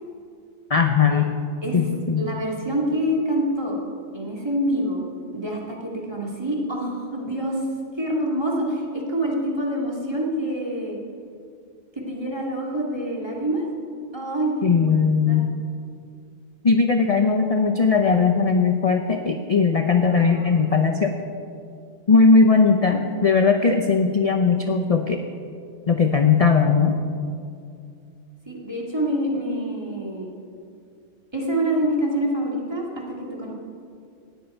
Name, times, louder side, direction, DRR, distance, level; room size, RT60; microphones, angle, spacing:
voice 1, 0.7-1.3 1.7-2.3 14.6-15.6 16.6-21.2 22.1-25.2 25.9-27.0, left 4 dB, 35° left, 5 dB, 0.7 m, -19 dB
voice 2, 2.2-3.8 4.1-5.1 5.3-7.6 8.0-11.0 12.0-13.6 14.1-15.4 20.1-20.7 21.1-21.2 28.5-30.3 31.3-33.5, right 1 dB, 20° right, -2 dB, 2.5 m, -26 dB
18.5 x 14.0 x 4.5 m, 2.4 s
omnidirectional pair, 1.2 m